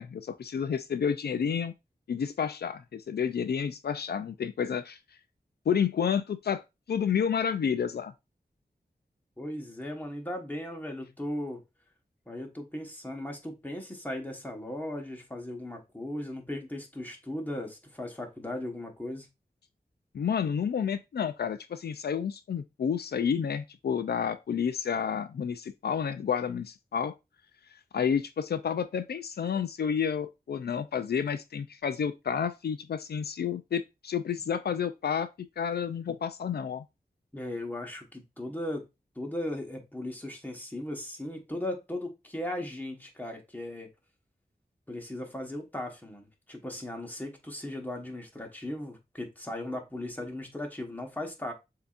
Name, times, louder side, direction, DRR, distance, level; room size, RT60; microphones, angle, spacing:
voice 1, 0.0-1.7 2.1-5.0 5.7-6.6 6.9-8.1 20.1-27.1 27.9-35.3 35.6-36.8, left 7 dB, 80° left, 0.4 m, -30 dB
voice 2, 9.4-11.6 12.3-19.3 37.3-38.9 39.1-43.9 44.9-51.5, left 1 dB, 10° left, 1.2 m, -37 dB
6.9 x 2.8 x 2.4 m
wide cardioid pair, 75°, 16 cm